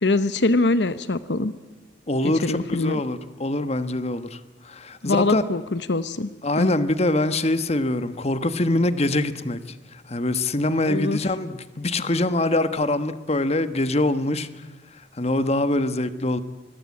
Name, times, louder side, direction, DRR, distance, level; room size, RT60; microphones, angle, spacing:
voice 1, 0.0-1.5 2.4-3.0 5.0-6.3 6.6-6.7 10.9-11.2, left 2 dB, 70° left, 13 dB, 0.9 m, -23 dB
voice 2, 2.1-5.4 6.4-14.6 15.2-16.4, left 2 dB, 35° left, 12 dB, 1.3 m, -24 dB
27.0 x 21.5 x 8.6 m, 1.2 s
head